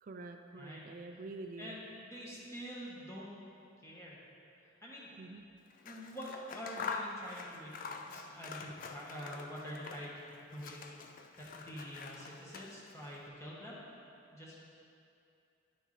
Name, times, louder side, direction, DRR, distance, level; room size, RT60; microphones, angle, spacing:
voice 1, 0.0-1.8 5.2-5.4, right 3 dB, 40° right, 5 dB, 0.3 m, -47 dB
voice 2, 0.6-0.9 1.6-3.4 3.8-4.3 4.6-5.1 5.8-13.9 14.3-14.6, equal, 15° left, -6 dB, 1.2 m, -46 dB
Scissors, 5.7-10.2 10.5-13.1, left 4 dB, 40° left, 0.3 m, -45 dB
10.0 x 6.3 x 3.2 m, 2.6 s
head